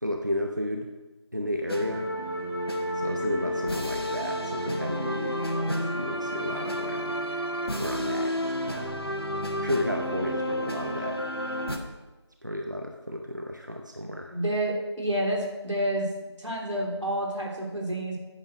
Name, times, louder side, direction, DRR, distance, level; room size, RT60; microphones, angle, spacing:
voice 1, 0.0-0.9 1.3-2.1 2.9-7.2 7.8-8.3 8.6-8.9 9.6-11.2 12.4-14.3, left 1 dB, 40° right, 2 dB, 0.7 m, -33 dB
sound 1, 1.7-11.8, equal, 55° left, 1.5 m, -31 dB
voice 2, 14.3-16.1 16.4-18.2, right 1 dB, 85° right, -1 dB, 3.3 m, -29 dB
9.2 x 6.9 x 6.2 m, 1.1 s
figure-of-eight pair, 180°, 15 cm